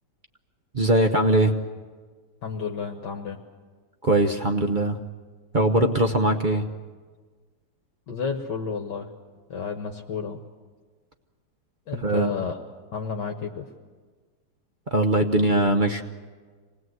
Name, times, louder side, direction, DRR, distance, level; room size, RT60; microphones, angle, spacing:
voice 1, 0.7-1.5 4.0-5.0 5.5-6.7 12.0-12.3 14.9-16.0, right 2 dB, 45° right, 5 dB, 0.6 m, -21 dB
voice 2, 2.4-3.4 8.1-9.1 9.5-10.4 11.9-12.6 12.9-13.7, left 5 dB, 60° left, 3 dB, 1.7 m, -31 dB
26.5 x 19.5 x 8.0 m, 1.5 s
omnidirectional pair, 2.4 m